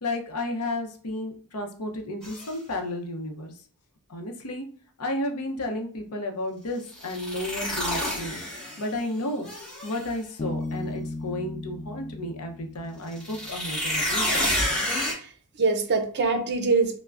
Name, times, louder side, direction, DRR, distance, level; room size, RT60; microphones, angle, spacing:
voice 1, 0.0-3.5 4.1-4.6 5.0-8.4 8.8-9.5 9.8-14.4, left 1 dB, 75° left, 4 dB, 0.7 m, -32 dB
sound 1, 2.2-2.5 6.9-9.0 9.4-10.1 13.1-15.1, left 1 dB, 5° left, 1.1 m, -29 dB
Bass guitar, 10.4-13.9, left 2 dB, 30° left, 0.3 m, -36 dB
voice 2, 15.0-17.0, right 4 dB, 50° right, 7 dB, 0.5 m, -25 dB
5.5 x 2.1 x 2.4 m, 0.43 s
head